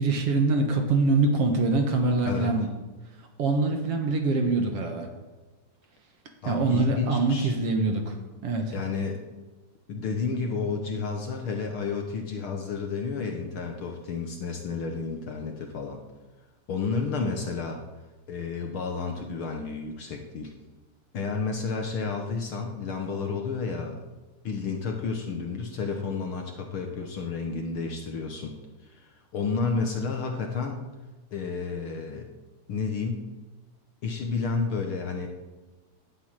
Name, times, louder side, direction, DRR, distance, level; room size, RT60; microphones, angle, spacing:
voice 1, 0.0-2.7 3.4-5.1 6.5-8.2 8.4-8.7, right 3 dB, 60° right, 4 dB, 2.1 m, -24 dB
voice 2, 6.4-7.5 8.7-9.2 9.9-16.0 16.7-17.8 18.3-20.5 21.1-24.0 24.4-28.6 28.9-30.8 31.3-32.3 32.7-33.3 34.0-35.3, left 4 dB, 55° left, 3 dB, 1.7 m, -31 dB
11.5 x 8.0 x 9.0 m, 1.2 s
omnidirectional pair, 3.3 m